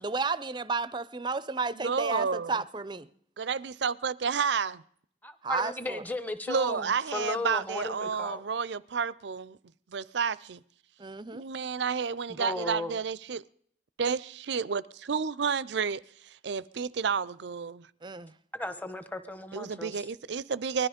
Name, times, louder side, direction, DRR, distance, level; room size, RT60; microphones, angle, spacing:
voice 1, 0.0-3.1 5.4-6.0 11.0-11.4 18.0-18.3, right 4 dB, 25° right, 0.5 m, -32 dB
voice 2, 1.8-2.6 3.4-4.8 6.5-9.6 9.9-10.6 11.3-13.4 14.0-17.9 19.5-20.9, right 6 dB, 70° right, 0.5 m, -31 dB
voice 3, 5.2-8.4 12.4-13.0 18.5-20.1, left 2 dB, 10° left, 1.0 m, -35 dB
20.0 x 12.5 x 5.1 m
head